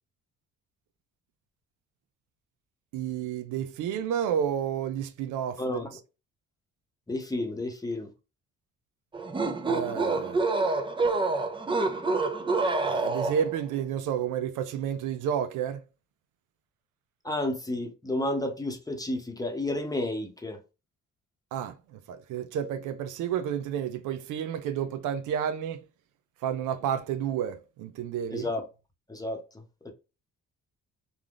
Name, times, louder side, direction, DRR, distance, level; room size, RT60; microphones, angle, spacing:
voice 1, 2.9-5.8 9.6-10.4 12.9-15.8 21.5-25.8 26.4-28.5, right 9 dB, 85° right, 0.5 m, -31 dB
voice 2, 5.6-5.9 7.1-8.1 17.2-20.6 28.3-28.6 29.1-29.9, left 1 dB, 10° left, 0.8 m, -31 dB
sound 1, 9.1-13.6, right 3 dB, 15° right, 0.5 m, -27 dB
3.4 x 2.4 x 2.4 m
cardioid pair, 90°, 30 cm